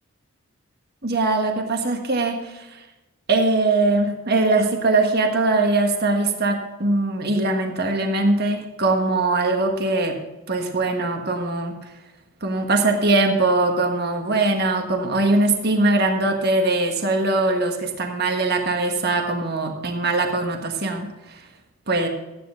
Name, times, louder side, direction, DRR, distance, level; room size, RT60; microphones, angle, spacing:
voice 1, 1.0-2.6 3.3-10.2 10.5-11.8 12.4-21.1 21.9-22.1, right 2 dB, 50° right, 3 dB, 1.5 m, -21 dB
13.5 x 9.9 x 3.7 m, 1.1 s
head